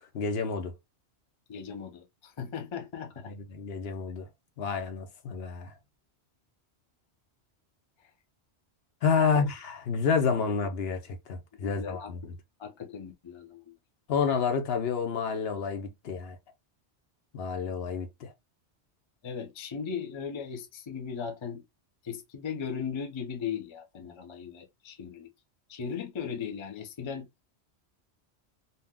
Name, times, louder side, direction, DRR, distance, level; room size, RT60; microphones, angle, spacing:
voice 1, 0.1-0.8 3.3-4.3 4.6-5.7 9.0-12.2 14.1-16.4 17.3-18.3, left 5 dB, 65° left, 0.9 m, -29 dB
voice 2, 1.5-3.3 9.2-9.5 11.6-12.3 12.6-13.7 19.2-21.6 22.0-25.3 25.7-27.3, left 7 dB, 40° left, 0.4 m, -38 dB
2.7 x 2.1 x 3.4 m
omnidirectional pair, 1.1 m